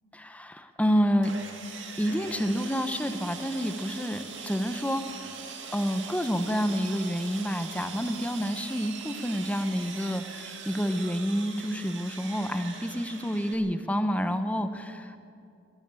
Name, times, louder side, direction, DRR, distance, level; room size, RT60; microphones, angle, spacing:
voice 1, 0.1-1.3 2.0-5.0 5.7-15.2, equal, 5° left, 9 dB, 0.9 m, -28 dB
Sawing, 1.2-13.5, right 6 dB, 65° right, 2.5 m, -42 dB
20.5 x 14.0 x 9.0 m, 2.4 s
head